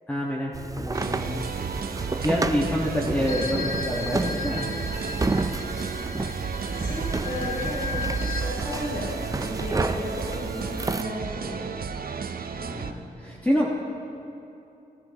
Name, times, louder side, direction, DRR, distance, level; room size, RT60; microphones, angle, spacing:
voice 1, 0.1-1.4 2.2-4.7 12.5-13.7, equal, 10° left, -5 dB, 1.4 m, -27 dB
creaking wooden floors, 0.5-11.0, right 3 dB, 20° right, 0.5 m, -31 dB
Purple Rock Loop, 0.9-12.9, right 6 dB, 65° right, 0.7 m, -33 dB
sound 1, 3.3-8.4, left 5 dB, 50° left, 2.3 m, -36 dB
voice 2, 6.8-11.7, equal, 75° left, -6 dB, 3.3 m, -34 dB
18.5 x 13.0 x 2.9 m, 2.9 s
cardioid pair, 65°, 16 cm